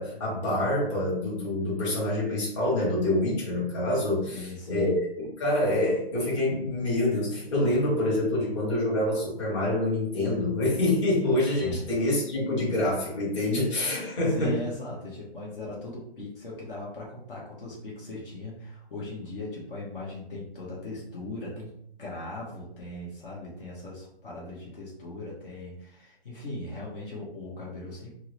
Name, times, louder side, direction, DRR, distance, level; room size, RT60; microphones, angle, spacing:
voice 1, 0.0-5.0 5.4-14.6, left 1 dB, 25° left, -6 dB, 1.2 m, -26 dB
voice 2, 4.3-5.0 11.6-11.8 14.2-21.7 22.0-28.1, left 1 dB, 55° left, -5 dB, 1.1 m, -39 dB
3.5 x 2.0 x 3.0 m, 0.72 s
hypercardioid pair, 160°, 32 cm